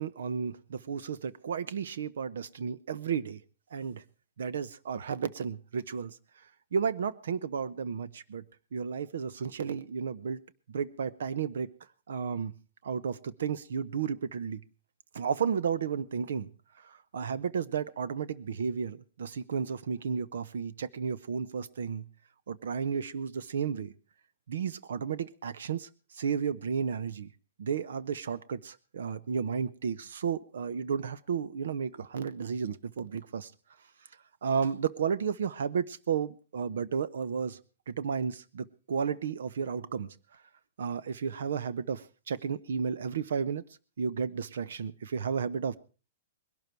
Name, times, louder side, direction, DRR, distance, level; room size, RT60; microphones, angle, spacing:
voice 1, 0.0-3.4 3.7-4.0 4.4-6.2 6.7-8.4 8.7-10.4 10.7-11.7 12.1-12.5 12.8-14.6 15.1-16.5 16.8-22.0 22.5-23.9 24.5-25.9 26.1-27.3 27.6-33.5 34.4-37.6 37.9-40.1 40.8-43.6 44.0-45.8, right 6 dB, 75° right, 16 dB, 0.9 m, -33 dB
21.0 x 12.0 x 4.6 m, 0.36 s
hypercardioid pair, 175°, 0 cm